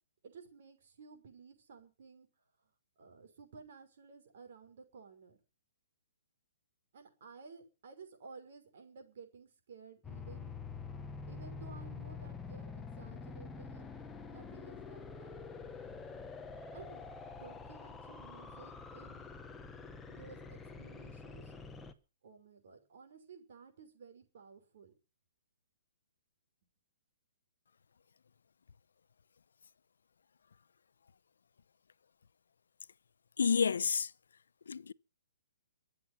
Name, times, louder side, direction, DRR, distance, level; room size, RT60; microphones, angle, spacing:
voice 1, 0.2-2.3 3.0-5.4 6.9-10.6 11.3-13.9 14.3-15.4 16.7-17.0 17.4-19.3 20.1-21.6 22.2-24.9, right 5 dB, 45° right, 5.7 m, -55 dB
sound 1, 10.0-21.9, left 4 dB, 5° left, 1.0 m, -46 dB
voice 2, 33.4-34.1 34.7-34.9, left 6 dB, 80° left, 0.8 m, -29 dB
24.0 x 8.1 x 5.8 m
hypercardioid pair, 175°, 0 cm